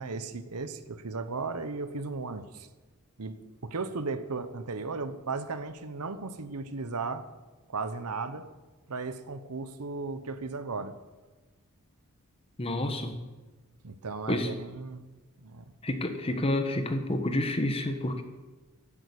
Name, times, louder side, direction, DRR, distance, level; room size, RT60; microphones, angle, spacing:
voice 1, 0.0-2.7 3.2-3.3 3.6-7.3 7.7-8.5 8.9-11.0 13.8-15.0 15.4-15.6, right 4 dB, 85° right, 12 dB, 0.9 m, -35 dB
voice 2, 12.6-13.2 14.3-14.5 15.8-18.2, left 1 dB, 25° left, 7 dB, 1.2 m, -29 dB
11.0 x 8.6 x 8.5 m, 1.2 s
head